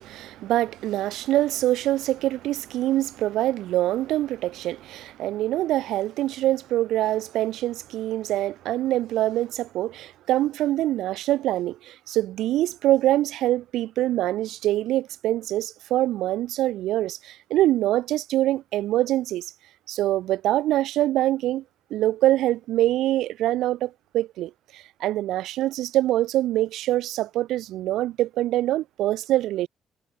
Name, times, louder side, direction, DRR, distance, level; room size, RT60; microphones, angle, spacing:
voice 1, 0.0-19.5 19.9-21.6 21.9-29.7, right 14 dB, 85° right, 3.2 m, -24 dB
cardioid pair, 90°, 0 cm